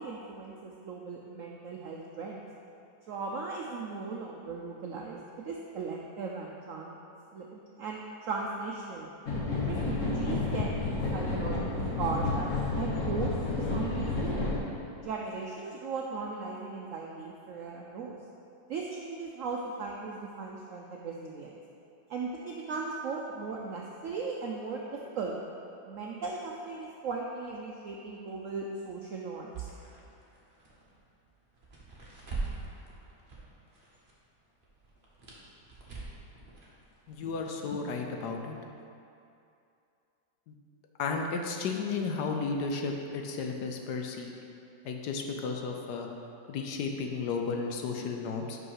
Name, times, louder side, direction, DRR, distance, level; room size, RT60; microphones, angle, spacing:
voice 1, 0.0-2.5 3.1-5.2 5.5-7.0 7.3-9.1 9.6-12.5 12.8-14.4 15.0-18.2 18.7-21.5 22.1-25.3 25.9-29.7, right 4 dB, 80° right, -1 dB, 0.7 m, -37 dB
sound 1, 9.3-14.6, left 3 dB, 50° left, 1.3 m, -30 dB
sound 2, 29.5-34.1 34.4-37.9, right 3 dB, 35° right, 1.1 m, -43 dB
voice 2, 37.1-38.6 40.5-40.6 41.0-44.3 44.8-46.1 46.5-48.6, left 4 dB, 70° left, 3 dB, 1.2 m, -33 dB
5.5 x 5.4 x 5.6 m, 2.6 s
omnidirectional pair, 1.9 m